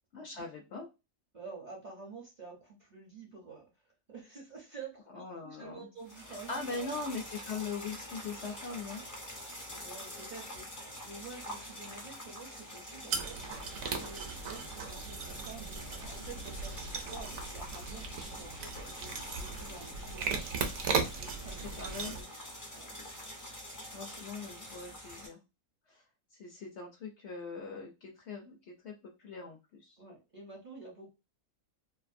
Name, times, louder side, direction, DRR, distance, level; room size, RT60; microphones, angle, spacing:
voice 1, 0.1-0.9 5.1-5.9 6.3-9.0 21.8-22.1 23.9-25.4 25.9-26.0 26.4-30.0, left 4 dB, 65° left, 1 dB, 0.7 m, -41 dB
voice 2, 1.3-3.7 4.1-6.9 9.7-21.6 22.0-22.2 22.7-23.0 30.0-31.1, right 4 dB, 45° right, -3 dB, 0.6 m, -49 dB
sound 1, 6.0-25.3, equal, 20° left, 0.5 m, -46 dB
sound 2, 13.1-22.2, right 5 dB, 70° right, 1.0 m, -37 dB
2.6 x 2.4 x 2.4 m, 0.26 s
omnidirectional pair, 1.5 m